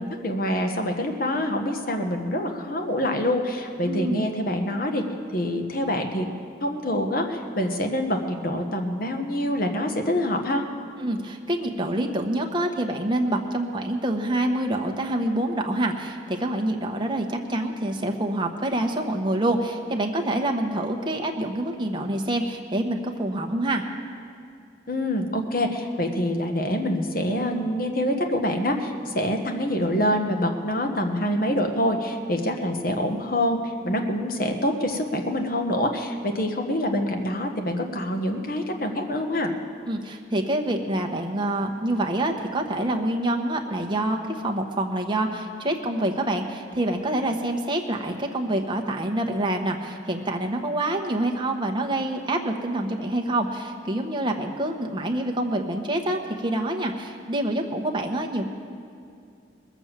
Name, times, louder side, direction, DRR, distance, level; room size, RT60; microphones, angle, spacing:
voice 1, 0.0-5.0 5.3-6.3 6.6-10.6 24.9-39.5, left 1 dB, 50° left, 4 dB, 1.2 m, -26 dB
voice 2, 3.9-4.2 11.0-23.8 39.9-58.5, right 1 dB, 25° right, 2 dB, 1.0 m, -26 dB
20.5 x 7.1 x 7.3 m, 2.4 s
head